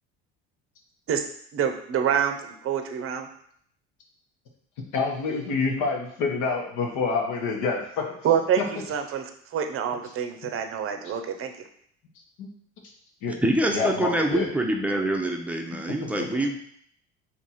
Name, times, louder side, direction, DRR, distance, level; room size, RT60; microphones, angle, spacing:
voice 1, 1.5-3.3 8.2-9.2 9.5-11.5, right 8 dB, 40° right, 6 dB, 0.7 m, -26 dB
voice 2, 4.9-8.1 8.6-8.7 12.4-12.5 13.2-13.4 13.7-14.5 16.2-16.3, left 4 dB, 65° left, 1 dB, 1.1 m, -27 dB
voice 3, 13.3-16.6, right 1 dB, 5° right, 2 dB, 0.7 m, -25 dB
3.5 x 2.9 x 4.2 m, 0.65 s
hypercardioid pair, 75°, 33 cm